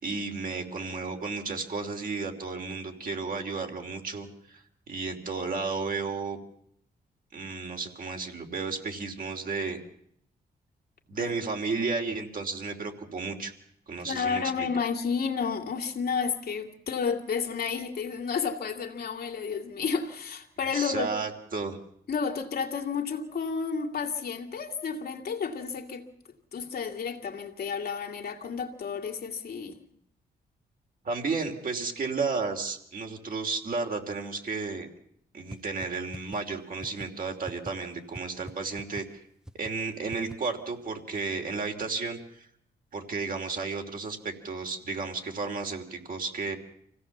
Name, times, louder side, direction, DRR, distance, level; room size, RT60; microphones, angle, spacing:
voice 1, 0.0-6.4 7.3-9.8 11.1-13.5 13.9-14.7 20.7-21.8 31.0-34.9 35.3-39.2 39.5-42.4 42.9-46.6, right 4 dB, 55° right, 3.0 m, -33 dB
voice 2, 14.1-21.1 22.1-26.1 26.5-29.8, left 6 dB, 65° left, 2.2 m, -31 dB
sound 1, 35.5-35.6 35.8-35.9 36.1-36.4 36.8-37.1 37.5-37.7 38.1-38.2 38.5-38.6 38.8-39.0 39.5-39.7 40.1-40.3, right 1 dB, 5° right, 0.8 m, -40 dB
25.5 x 16.5 x 7.2 m
cardioid pair, 85°, 17 cm